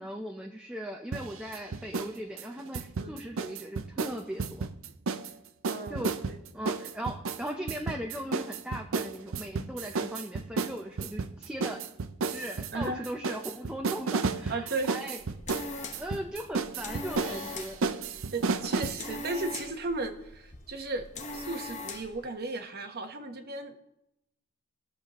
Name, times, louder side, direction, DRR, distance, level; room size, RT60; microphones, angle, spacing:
voice 1, 0.0-4.7 5.9-6.1 6.5-11.8 12.3-15.2 16.0-17.8, equal, 5° right, 2 dB, 0.5 m, -38 dB
sound 1, 1.1-2.1 2.4-5.3 5.6-19.0, right 4 dB, 60° right, 0.5 m, -33 dB
voice 2, 5.7-6.4 12.7-13.1 14.5-15.0 18.3-21.1 21.3-23.8, right 2 dB, 45° right, 6 dB, 1.0 m, -35 dB
sound 2, 15.2-22.2, left 3 dB, 30° left, 1.0 m, -42 dB
19.5 x 6.9 x 3.0 m, 0.84 s
head